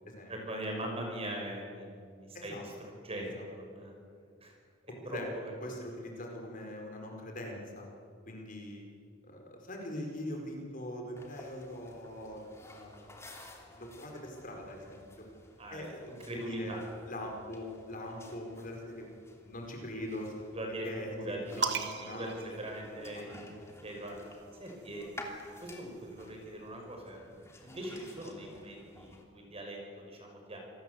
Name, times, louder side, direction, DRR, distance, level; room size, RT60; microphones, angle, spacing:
voice 1, 0.3-3.9 4.4-4.5 5.0-5.5 15.6-16.8 20.5-21.8 22.1-23.4 23.8-24.2 24.6-25.1 25.5-30.6, right 1 dB, 30° right, 1 dB, 5.8 m, -41 dB
voice 2, 4.9-5.3 5.6-7.9 8.3-8.9 9.2-13.2 13.7-15.1 15.7-16.8 17.1-20.4 20.8-21.3 22.0-22.3 23.1-23.2, left 1 dB, 45° left, 1 dB, 4.9 m, -42 dB
sound 1, 11.2-29.2, left 1 dB, 15° left, 2.9 m, -53 dB
sound 2, 21.6-23.4 24.5-26.2, right 4 dB, 60° right, 1.6 m, -39 dB
27.5 x 19.0 x 8.0 m, 2.2 s
head